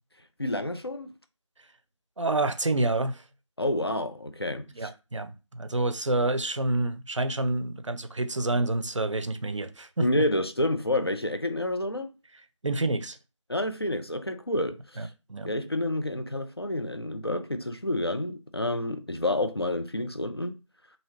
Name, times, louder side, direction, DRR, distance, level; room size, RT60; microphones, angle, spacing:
voice 1, 0.4-1.1 3.6-4.9 10.0-12.1 13.5-15.1 15.4-20.5, left 1 dB, 50° left, 0.4 m, -29 dB
voice 2, 2.2-3.2 4.8-10.2 12.6-13.2 15.0-15.5, right 2 dB, 70° right, 0.5 m, -28 dB
3.0 x 2.8 x 2.7 m
figure-of-eight pair, 175°, 16 cm